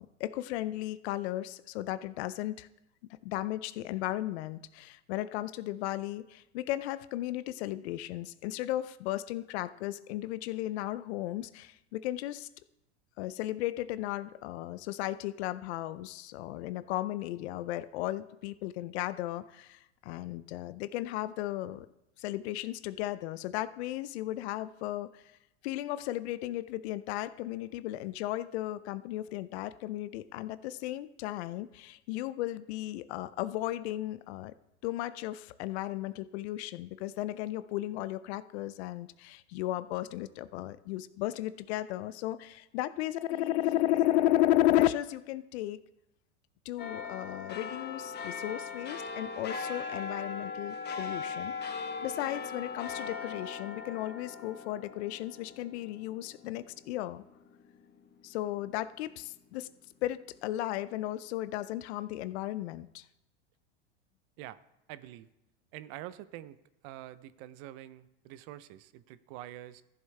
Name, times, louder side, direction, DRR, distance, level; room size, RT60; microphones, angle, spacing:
voice 1, 0.0-2.7 3.2-12.5 13.2-21.9 22.2-25.2 25.6-34.5 34.8-45.8 46.7-51.5 52.0-57.2 58.2-59.7 60.0-63.0, left 14 dB, 70° left, 15 dB, 0.6 m, -34 dB
sound 1, 46.8-57.6 58.0-58.1, left 5 dB, 30° left, 1.1 m, -39 dB
voice 2, 64.9-65.3 65.7-66.6 66.8-69.8, right 14 dB, 55° right, 16 dB, 0.6 m, -46 dB
14.5 x 7.3 x 3.3 m, 0.88 s
hypercardioid pair, 105°, 34 cm